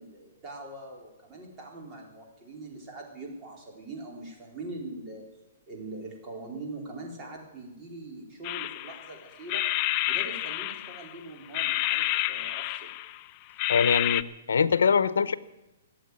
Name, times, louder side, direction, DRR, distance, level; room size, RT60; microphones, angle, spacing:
voice 1, 0.0-5.3 5.7-9.6 10.1-12.9, right 2 dB, 20° right, -1 dB, 4.2 m, -42 dB
sound 1, 8.4-9.1 9.5-11.1 11.5-13.2 13.6-14.2, left 15 dB, 35° left, 0.5 m, -29 dB
voice 2, 13.7-15.3, left 6 dB, 85° left, 16 dB, 0.9 m, -23 dB
18.0 x 8.0 x 9.6 m, 0.98 s
hypercardioid pair, 145°, 0 cm